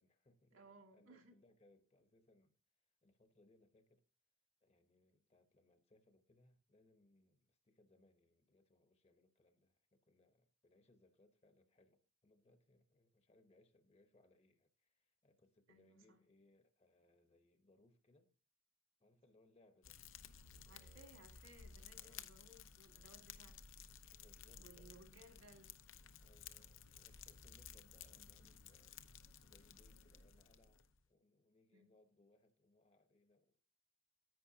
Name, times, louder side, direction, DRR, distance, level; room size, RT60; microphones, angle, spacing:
voice 1, 0.0-4.1 4.6-18.4 19.0-20.0 20.4-21.4 21.8-22.2 24.1-25.3 26.2-29.1 29.4-33.7, left 2 dB, 30° left, 0.9 m, -72 dB
voice 2, 0.5-1.3 15.7-16.2 20.7-23.6 24.5-25.8 28.1-28.3 31.7-31.9, right 2 dB, 80° right, 2.3 m, -63 dB
Fire, 19.8-31.0, left 7 dB, 65° left, 0.8 m, -57 dB
10.5 x 9.0 x 2.8 m
head